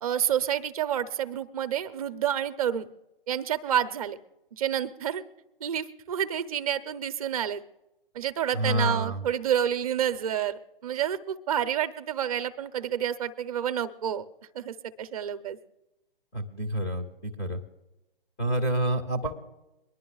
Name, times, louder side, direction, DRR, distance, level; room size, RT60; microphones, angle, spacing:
voice 1, 0.0-2.9 3.3-4.2 4.5-5.2 5.6-7.6 8.1-14.2 14.5-15.6, right 9 dB, 40° right, 11 dB, 0.7 m, -29 dB
voice 2, 8.5-9.2 16.3-17.6 18.4-19.4, right 1 dB, 5° left, -2 dB, 0.3 m, -28 dB
23.0 x 11.0 x 2.3 m, 0.95 s
figure-of-eight pair, 135°, 29 cm